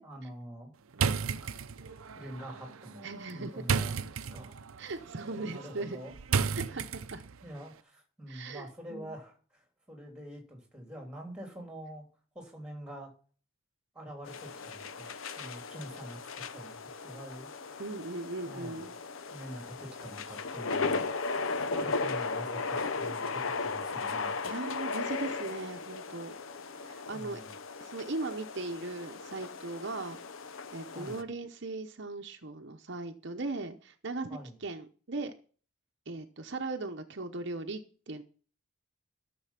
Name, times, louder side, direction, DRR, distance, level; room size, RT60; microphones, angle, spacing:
voice 1, 0.0-0.7 1.4-1.6 1.9-4.6 5.3-6.1 7.4-12.1 12.3-13.1 13.9-17.5 18.4-18.8 19.3-24.4 27.1-27.5 30.9-31.2 34.3-34.6, equal, 5° right, 2 dB, 3.4 m, -46 dB
sound 1, 0.9-7.4, right 6 dB, 80° right, 0.6 m, -34 dB
voice 2, 3.0-3.6 4.8-6.0 6.5-7.2 8.3-9.1 15.4-15.5 17.8-18.9 24.4-26.4 26.8-27.4 27.8-30.2 30.7-35.3 36.1-38.2, right 2 dB, 55° right, 5 dB, 0.9 m, -38 dB
sound 2, 14.3-31.2, left 4 dB, 70° left, 0.8 m, -36 dB
13.5 x 7.0 x 5.9 m, 0.40 s
head